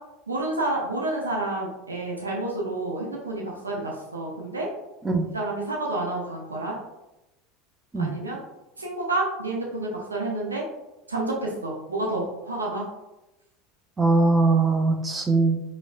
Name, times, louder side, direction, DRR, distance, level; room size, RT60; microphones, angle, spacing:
voice 1, 0.3-4.7 5.3-6.8 8.0-8.4 8.8-10.6 11.1-12.9, right 2 dB, 85° right, -2 dB, 0.5 m, -29 dB
voice 2, 14.0-15.6, right 3 dB, 20° right, 4 dB, 0.5 m, -21 dB
4.7 x 2.1 x 2.4 m, 0.97 s
figure-of-eight pair, 75°, 0 cm